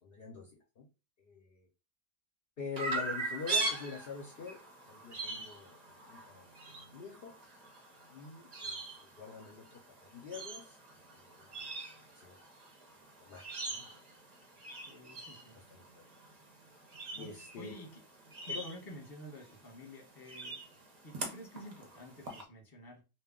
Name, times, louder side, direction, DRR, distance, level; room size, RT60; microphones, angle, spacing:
voice 1, 0.0-0.9 1.2-1.7 2.6-4.6 4.9-7.3 8.1-10.8 11.1-11.5 12.1-12.4 13.2-13.4 13.7-14.0 15.7-15.9 17.1-17.8 18.5-18.6, left 5 dB, 60° left, 1 dB, 0.6 m, -45 dB
Chirp tweet, 2.8-22.4, right 2 dB, 45° right, 0.5 m, -42 dB
voice 2, 14.7-15.6 17.1-18.0 18.4-20.6 21.0-23.0, equal, 20° left, -1 dB, 0.8 m, -50 dB
2.2 x 2.2 x 3.6 m, 0.31 s
omnidirectional pair, 1.5 m